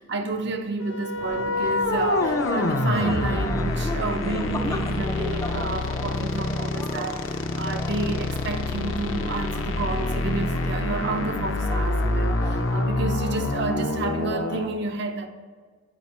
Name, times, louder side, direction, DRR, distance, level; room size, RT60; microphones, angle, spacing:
voice 1, 0.0-15.3, right 3 dB, 55° right, 0.6 m, -30 dB
sound 1, 0.8-14.7, left 2 dB, 65° left, 0.6 m, -27 dB
sound 2, 1.1-12.9, left 2 dB, 15° left, 0.3 m, -37 dB
8.3 x 5.1 x 4.2 m
head